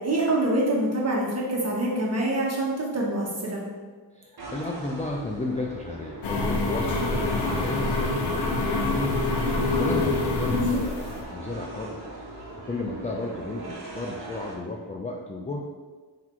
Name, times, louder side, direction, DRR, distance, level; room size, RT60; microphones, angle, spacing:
voice 1, 0.0-3.6 10.5-10.8, right 1 dB, 35° right, -3 dB, 1.2 m, -25 dB
voice 2, 4.1-9.2 9.8-12.0 12.7-15.6, left 2 dB, 20° left, -1 dB, 0.3 m, -33 dB
sound 1, 4.4-14.6, right 2 dB, 55° right, 1.2 m, -40 dB
sound 2, 6.2-11.2, left 2 dB, 60° left, 0.8 m, -26 dB
4.1 x 2.8 x 4.3 m, 1.4 s
cardioid pair, 75°, 45 cm